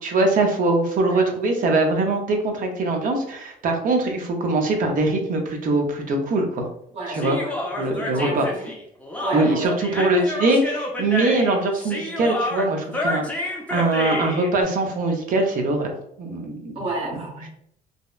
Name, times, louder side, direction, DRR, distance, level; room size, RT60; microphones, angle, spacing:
voice 1, 0.0-6.7 7.1-7.4 7.8-8.5 9.3-15.9 16.2-16.8, right 2 dB, 55° right, 3 dB, 0.6 m, -22 dB
voice 2, 6.9-7.6 7.8-8.7 9.2-10.0 16.7-17.5, right 2 dB, 35° right, -2 dB, 0.9 m, -31 dB
Human voice, 7.1-14.5, left 1 dB, 10° left, 0.5 m, -29 dB
2.7 x 2.0 x 2.3 m, 0.71 s
cardioid pair, 110°, 17 cm